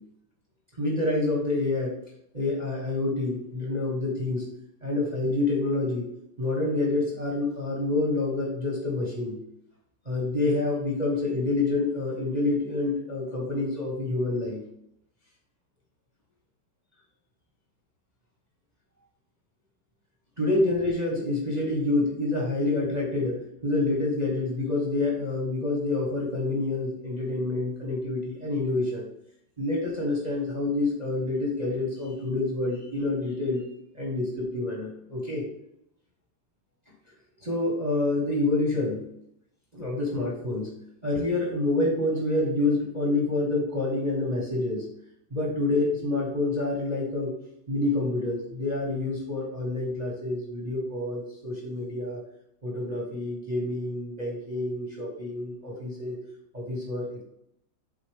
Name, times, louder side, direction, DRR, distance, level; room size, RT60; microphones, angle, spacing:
voice 1, 0.8-1.9 2.3-4.4 4.8-6.1 6.4-9.4 10.0-14.6 20.4-29.0 29.6-33.6 33.9-35.4 37.4-39.0 39.7-40.7 41.0-44.8 45.3-47.4 47.7-52.2 52.6-56.1 56.5-57.2, left 2 dB, 25° right, -2 dB, 1.0 m, -27 dB
8.3 x 3.9 x 3.4 m, 0.74 s
omnidirectional pair, 2.4 m